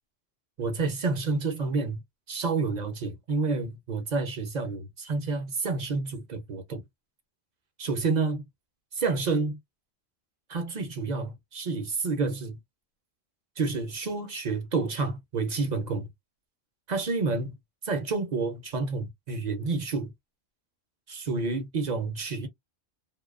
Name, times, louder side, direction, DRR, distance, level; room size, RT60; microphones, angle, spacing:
voice 1, 0.6-2.0 2.3-6.8 7.8-8.4 8.9-9.6 10.5-12.6 13.6-16.1 16.9-17.5 17.8-20.1 21.1-22.5, right 4 dB, 50° right, 0.6 m, -29 dB
2.6 x 2.2 x 2.4 m
omnidirectional pair, 1.1 m